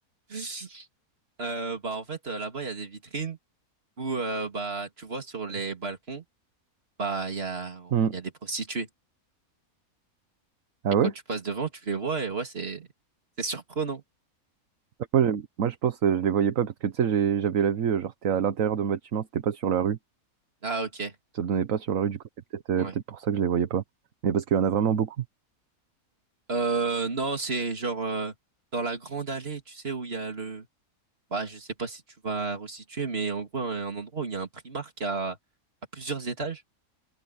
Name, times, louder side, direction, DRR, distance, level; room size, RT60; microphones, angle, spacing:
voice 1, 0.3-0.9 1.4-3.4 4.0-6.2 7.0-8.9 11.3-12.9 13.4-14.0 20.6-21.1 22.8-22.9 26.5-28.3 28.7-30.7 31.3-35.4 35.9-36.6, right 4 dB, 40° right, 3.1 m, -32 dB
voice 2, 15.1-20.0 21.3-22.2 22.5-23.8 24.2-25.2, right 8 dB, 65° right, 1.4 m, -25 dB
open air
omnidirectional pair, 1.5 m